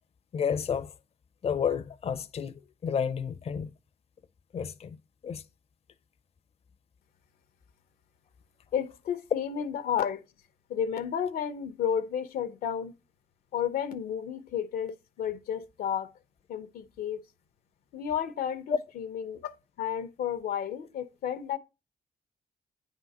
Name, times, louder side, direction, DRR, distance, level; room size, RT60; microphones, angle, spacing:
voice 1, 0.3-0.9 1.4-3.7 4.5-5.4 18.7-18.8, left 7 dB, 45° left, 0.5 m, -31 dB
voice 2, 8.7-10.2 10.7-12.9 13.5-16.1 16.5-17.2 17.9-21.6, left 8 dB, 90° left, 0.6 m, -32 dB
9.1 x 3.7 x 4.1 m
cardioid pair, 75°, 15 cm